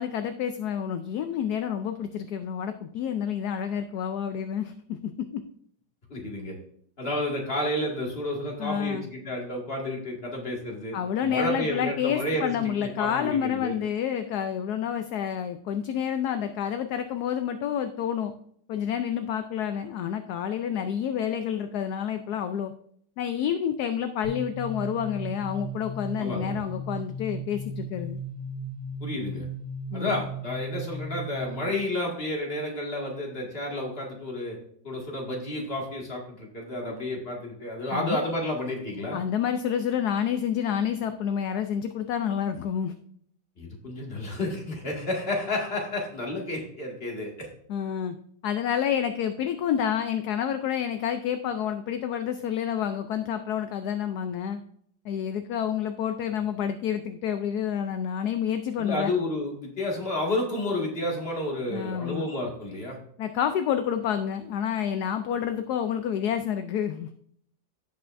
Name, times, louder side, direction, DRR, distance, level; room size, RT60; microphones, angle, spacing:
voice 1, 0.0-5.4 8.6-9.1 10.9-18.3 18.7-22.7 23.2-28.2 29.9-30.2 36.8-36.9 37.9-38.2 39.1-42.9 47.7-48.2 48.4-54.6 55.0-59.1 61.7-62.2 63.2-67.1, left 8 dB, 70° left, 8 dB, 1.1 m, -29 dB
voice 2, 6.1-6.6 7.0-13.8 26.2-26.6 29.0-29.5 29.9-34.6 34.8-39.2 43.6-47.5 58.8-63.0, left 1 dB, 35° left, -1 dB, 2.2 m, -31 dB
sound 1, 24.2-31.8, right 1 dB, 35° right, 1.8 m, -36 dB
17.0 x 5.6 x 2.6 m, 0.65 s
omnidirectional pair, 1.9 m